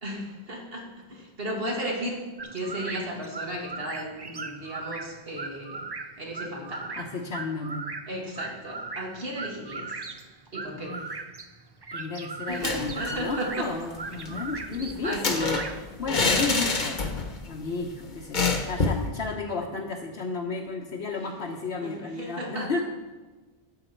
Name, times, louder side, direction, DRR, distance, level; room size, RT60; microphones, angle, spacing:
voice 1, 0.0-2.3 2.5-5.8 6.2-7.0 8.1-10.0 10.5-11.0 12.5-13.7 15.0-15.4 21.2-21.3 21.8-22.8, right 1 dB, 65° right, -2 dB, 2.4 m, -35 dB
sound 1, 2.4-15.8, right 3 dB, 30° right, 0.5 m, -39 dB
voice 2, 7.0-7.9 10.8-11.1 11.9-15.6 16.0-17.0 17.5-22.8, left 3 dB, 80° left, -1 dB, 1.2 m, -33 dB
sound 2, 12.5-13.3 13.6-13.7 14.0-17.4 17.7-17.8 18.3-19.1, left 3 dB, 50° left, 1.1 m, -27 dB
12.0 x 7.6 x 4.5 m, 1.3 s
omnidirectional pair, 1.0 m